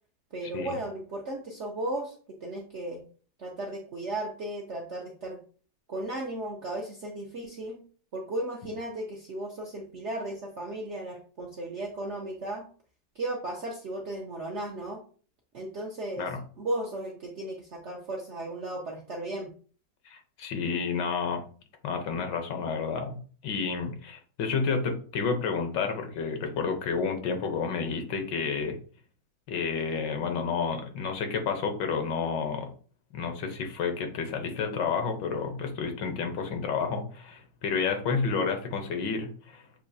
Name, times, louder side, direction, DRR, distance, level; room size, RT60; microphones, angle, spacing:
voice 1, 0.3-2.1 2.4-3.0 3.4-5.4 5.9-7.8 8.1-12.7 13.2-15.0 15.5-16.3 16.6-19.5, right 1 dB, 60° right, 0 dB, 0.7 m, -35 dB
voice 2, 20.1-21.4 21.8-23.2 23.4-28.8 29.5-32.7 33.1-39.6, left 5 dB, 75° left, 5 dB, 1.5 m, -30 dB
6.9 x 2.9 x 2.7 m, 0.42 s
omnidirectional pair, 2.0 m